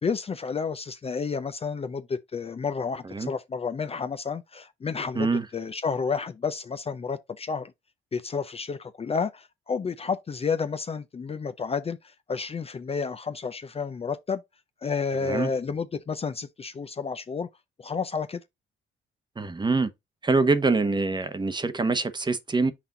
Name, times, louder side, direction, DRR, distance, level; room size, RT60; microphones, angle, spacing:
voice 1, 0.0-7.7 8.1-14.4 14.8-17.5 17.8-18.4, left 5 dB, 30° left, 0.5 m, -31 dB
voice 2, 5.1-5.4 15.2-15.5 19.4-19.9 20.2-22.7, right 3 dB, 20° right, 0.9 m, -24 dB
6.0 x 4.2 x 3.8 m
cardioid pair, 90°, 20 cm